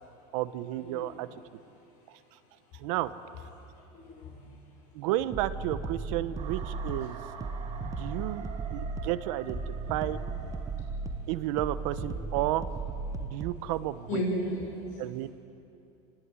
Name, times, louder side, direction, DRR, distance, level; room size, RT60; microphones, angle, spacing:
voice 1, 0.3-1.3 2.1-2.4 2.7-3.1 4.9-7.2 7.8-8.5 8.7-10.2 11.3-12.7 13.2-14.2 15.0-15.3, right 14 dB, 65° right, 13 dB, 1.1 m, -32 dB
voice 2, 4.0-4.5 7.9-8.1 9.8-10.0 14.1-14.6, left 1 dB, 50° left, -2 dB, 7.8 m, -33 dB
sound 1, 5.3-13.6, right 4 dB, 20° right, 0.8 m, -36 dB
sound 2, 6.4-11.3, right 7 dB, 35° right, 2.6 m, -46 dB
26.0 x 19.0 x 9.8 m, 2.8 s
cardioid pair, 165°, 18 cm